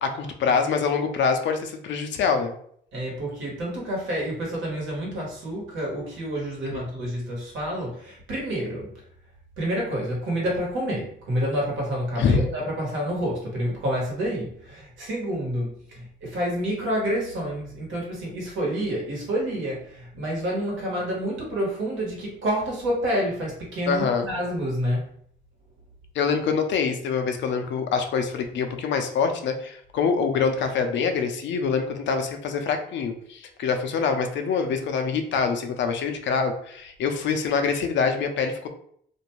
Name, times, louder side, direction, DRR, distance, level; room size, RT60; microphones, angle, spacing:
voice 1, 0.0-2.5 6.6-6.9 12.2-12.5 23.9-24.3 26.1-38.7, left 5 dB, 65° left, 6 dB, 0.5 m, -25 dB
voice 2, 2.9-8.9 9.6-25.1, equal, 75° right, -3 dB, 1.2 m, -28 dB
2.5 x 2.2 x 3.0 m, 0.64 s
cardioid pair, 90°, 20 cm